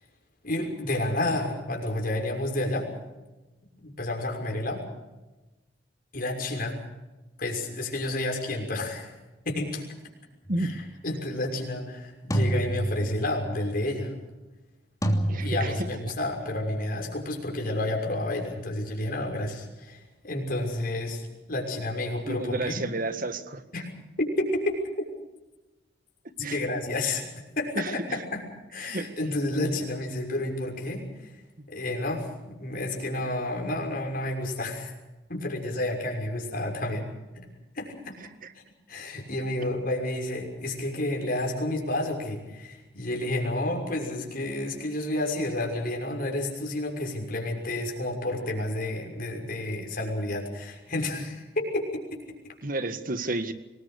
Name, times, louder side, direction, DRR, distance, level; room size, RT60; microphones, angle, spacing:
voice 1, 0.4-2.9 3.8-4.8 6.1-6.8 7.4-9.1 9.4-9.8 10.6-14.1 15.4-21.2 21.5-22.8 23.7-23.9 24.2-24.8 26.4-27.3 27.6-28.4 28.7-31.3 31.7-34.9 35.3-37.5 37.7-38.2 38.9-52.2, left 1 dB, 50° left, 1 dB, 6.2 m, -30 dB
sound 1, 10.5-10.8 12.3-13.5 15.0-16.2, right 1 dB, 20° left, 3.1 m, -28 dB
voice 2, 15.3-15.7 22.3-23.6 26.4-26.6 27.8-27.9 28.8-29.1 52.6-53.5, right 2 dB, 50° right, 10 dB, 1.8 m, -30 dB
25.5 x 20.5 x 6.6 m, 1.1 s
head